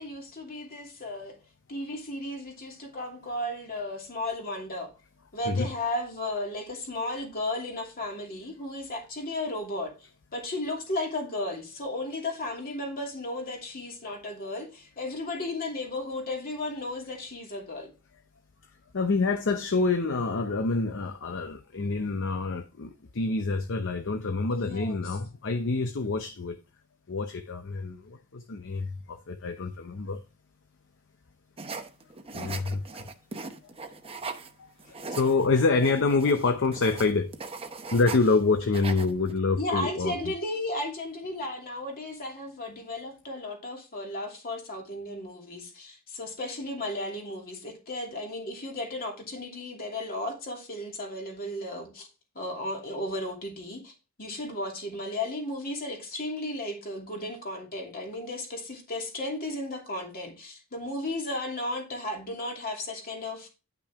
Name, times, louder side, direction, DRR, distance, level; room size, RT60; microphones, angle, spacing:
voice 1, 0.0-1.4 1.7-4.9 5.3-9.9 10.3-17.9 24.5-25.2 39.6-52.1 52.3-53.9 54.2-63.5, left 1 dB, 45° left, 2.7 m, -34 dB
voice 2, 18.9-26.6 27.1-30.2 32.3-32.8 33.4-33.5 34.8-37.3 37.9-40.1, left 3 dB, 60° left, 0.7 m, -27 dB
sound 1, 31.6-34.5 34.8-38.4 38.6-39.4, right 4 dB, 25° right, 0.8 m, -39 dB
10.5 x 6.0 x 3.5 m
head